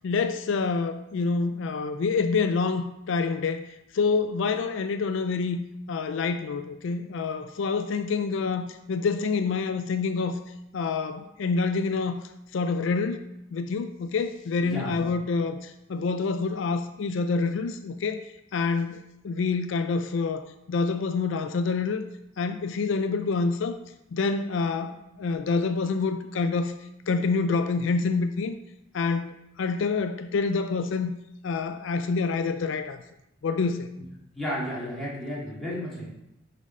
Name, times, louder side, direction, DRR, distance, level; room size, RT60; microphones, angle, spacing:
voice 1, 0.0-3.6 3.9-5.6 5.9-10.4 10.7-12.2 12.5-19.0 19.2-22.0 22.4-23.8 24.1-26.8 27.1-28.6 28.9-31.1 31.4-33.0 33.4-33.9, left 4 dB, 75° left, 9 dB, 0.4 m, -27 dB
voice 2, 14.6-15.1 34.4-36.1, equal, ahead, -8 dB, 2.2 m, -33 dB
6.5 x 3.9 x 5.3 m, 0.86 s
head